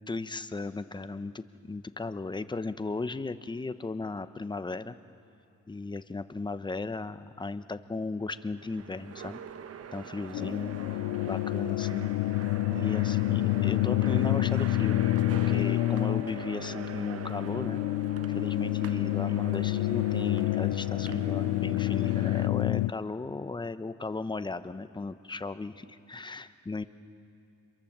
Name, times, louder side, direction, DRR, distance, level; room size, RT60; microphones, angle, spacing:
voice 1, 0.1-4.9 5.7-9.4 9.9-10.8 11.2-12.1 12.7-15.1 15.5-17.8 18.3-26.8, left 3 dB, 15° left, 11 dB, 0.9 m, -36 dB
sound 1, 8.2-22.5, right 8 dB, 55° right, 1.0 m, -44 dB
sound 2, 10.3-22.9, left 17 dB, 85° left, 0.5 m, -28 dB
27.0 x 23.0 x 7.4 m, 2.5 s
cardioid pair, 90°, 30 cm